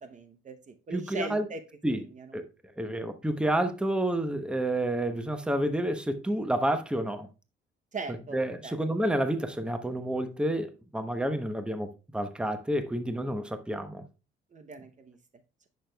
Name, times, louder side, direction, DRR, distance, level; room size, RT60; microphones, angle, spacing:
voice 1, 0.0-1.6 2.2-2.3 7.9-8.4 8.6-8.7 14.5-15.2, right 3 dB, 40° right, 0.8 m, -39 dB
voice 2, 0.9-1.5 1.8-2.0 2.3-2.4 2.8-7.3 8.3-14.0, right 1 dB, 5° right, 0.9 m, -29 dB
9.8 x 6.2 x 2.3 m
cardioid pair, 90°, 20 cm